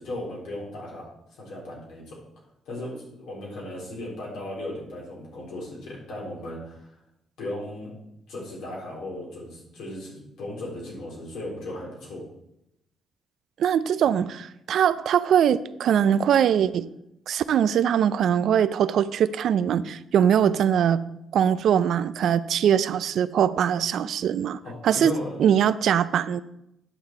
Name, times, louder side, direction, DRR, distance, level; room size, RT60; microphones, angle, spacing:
voice 1, 0.0-2.2 2.7-7.0 7.4-7.9 8.3-12.2 24.6-25.5, left 1 dB, 85° left, -3 dB, 3.7 m, -36 dB
voice 2, 13.6-16.9 17.3-21.0 21.3-26.4, right 9 dB, 70° right, 15 dB, 0.4 m, -22 dB
9.8 x 6.8 x 4.5 m, 0.82 s
cardioid pair, 90°, 0 cm